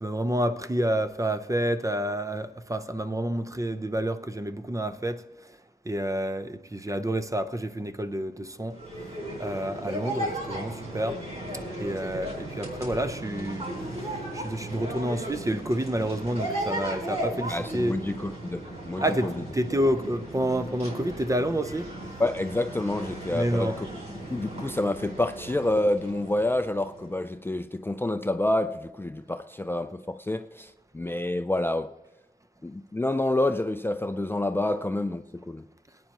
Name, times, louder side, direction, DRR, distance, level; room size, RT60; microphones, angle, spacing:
voice 1, 0.0-11.2 11.8-18.0 19.0-21.9 23.3-23.8, right 1 dB, 20° right, 0.7 m, -29 dB
sound 1, 8.7-27.2, right 1 dB, 45° right, 4.7 m, -36 dB
voice 2, 17.5-19.3 22.2-23.9 24.3-31.9 32.6-35.6, left 1 dB, 15° left, 0.4 m, -28 dB
22.0 x 9.2 x 2.9 m
wide cardioid pair, 60°, 16 cm